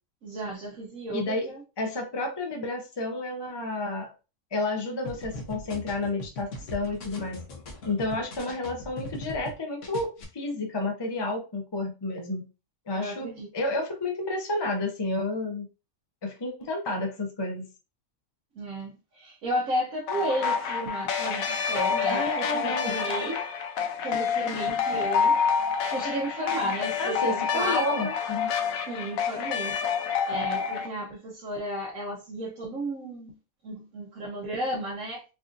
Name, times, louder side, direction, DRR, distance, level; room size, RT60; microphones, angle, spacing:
voice 1, 0.2-1.6 12.9-13.5 18.5-23.3 24.0-25.4 25.9-28.1 28.9-29.8 30.3-33.3 33.6-35.2, right 1 dB, 75° right, 1.3 m, -33 dB
voice 2, 1.1-1.4 1.8-4.1 4.5-7.4 7.8-12.4 12.9-15.7 16.2-17.7 22.1-22.9 27.0-28.5, left 2 dB, 40° left, 0.3 m, -31 dB
sound 1, 5.0-9.5 9.8-10.2, left 1 dB, 65° left, 1.3 m, -40 dB
sound 2, 20.1-30.9, left 6 dB, 90° left, 1.1 m, -28 dB
4.7 x 2.6 x 2.5 m
omnidirectional pair, 1.4 m